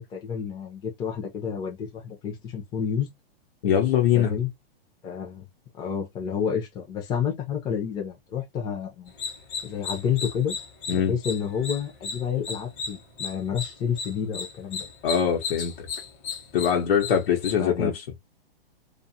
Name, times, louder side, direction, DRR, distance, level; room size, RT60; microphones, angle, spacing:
voice 1, 0.1-3.1 4.2-4.5 5.0-5.4 5.7-9.1 9.6-10.6 10.9-14.9 17.6-17.9, left 8 dB, 15° left, 0.6 m, -29 dB
voice 2, 3.6-4.3 10.9-11.1 15.0-15.7 16.5-17.9, left 8 dB, 65° left, 1.0 m, -22 dB
sound 1, 9.1-17.5, left 5 dB, 35° left, 1.0 m, -35 dB
2.5 x 2.5 x 2.7 m
hypercardioid pair, 150°, 31 cm